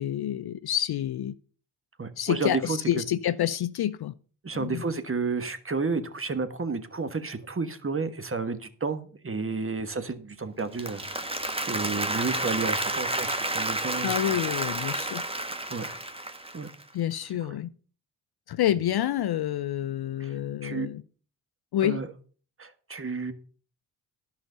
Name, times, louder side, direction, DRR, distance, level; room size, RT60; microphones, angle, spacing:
voice 1, 0.0-1.3 2.2-4.1 4.5-4.8 14.0-15.2 16.9-17.7 18.5-21.0 21.7-22.0, left 11 dB, 55° left, 0.6 m, -28 dB
voice 2, 2.0-2.8 4.4-11.3 11.7-14.4 15.7-16.0 16.5-16.7 20.2-20.3 20.6-20.9 21.8-22.1 22.6-23.3, right 4 dB, 25° right, 1.5 m, -31 dB
Applause, 10.6-16.8, right 1 dB, 10° right, 1.3 m, -30 dB
11.5 x 5.8 x 6.7 m
supercardioid pair, 50°, 47 cm